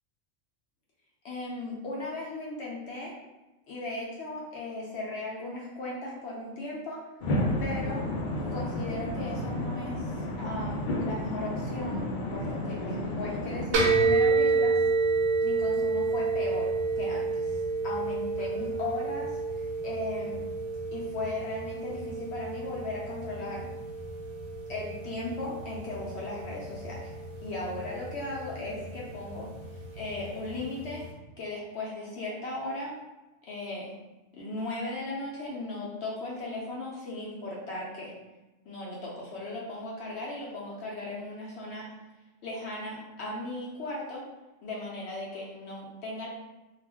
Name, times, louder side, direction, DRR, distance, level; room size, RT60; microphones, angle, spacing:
voice 1, 1.2-3.1 3.7-7.0 7.6-8.0 8.5-14.8 15.4-20.4 20.9-23.7 24.7-27.1 27.4-29.5 29.9-31.0 31.4-32.9 33.5-33.9 34.3-38.1 38.7-41.9 42.4-44.2 44.6-46.3, left 2 dB, 65° left, -4 dB, 0.8 m, -37 dB
sound 1, 7.2-13.7, left 1 dB, 85° left, 0.4 m, -31 dB
sound 2, 13.7-31.1, right 4 dB, 60° right, 0.7 m, -30 dB
2.4 x 2.1 x 3.3 m, 1.1 s
omnidirectional pair, 1.4 m